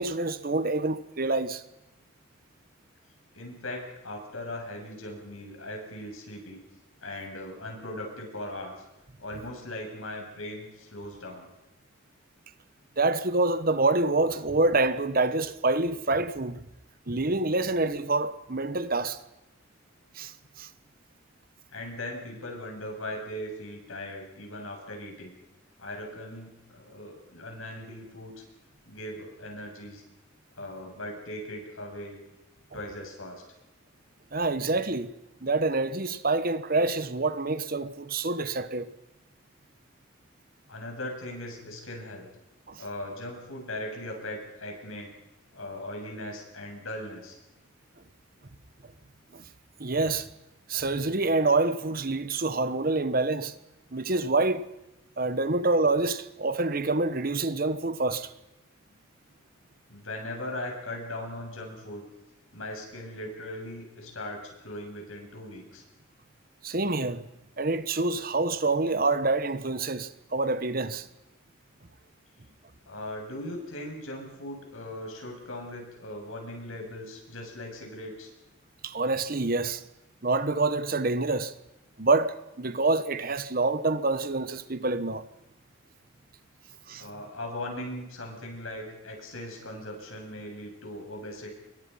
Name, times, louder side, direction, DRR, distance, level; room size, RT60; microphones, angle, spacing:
voice 1, 0.0-1.6 13.0-16.7 17.1-19.2 20.1-20.7 34.3-35.1 35.4-38.9 42.7-42.8 49.3-49.4 49.8-50.3 50.7-53.5 53.9-54.7 55.2-58.3 66.6-67.3 67.6-71.1 78.8-79.8 80.2-81.5 82.0-85.2 86.9-87.1, right 3 dB, 45° right, 1.2 m, -27 dB
voice 2, 3.3-6.6 7.0-8.8 9.2-11.5 21.7-25.3 25.8-28.4 28.9-30.0 30.6-32.2 32.7-33.4 40.7-42.3 42.8-45.1 45.5-47.4 59.9-62.0 62.5-65.8 72.9-78.3 87.0-91.5, left 1 dB, 85° left, 7.5 m, -39 dB
28.5 x 23.0 x 5.7 m
head